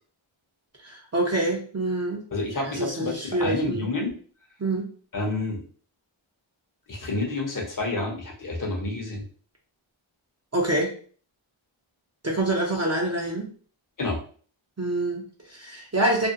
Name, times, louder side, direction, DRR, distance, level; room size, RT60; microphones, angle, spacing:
voice 1, 0.8-2.2 2.6-3.9 4.6-4.9 10.5-10.9 12.2-13.5 14.8-16.3, right 1 dB, 30° right, -1 dB, 0.6 m, -26 dB
voice 2, 2.3-4.2 5.1-5.6 6.9-9.2 14.0-14.2, left 2 dB, 40° left, 0 dB, 0.8 m, -29 dB
2.6 x 2.1 x 2.5 m, 0.43 s
wide cardioid pair, 65°, 49 cm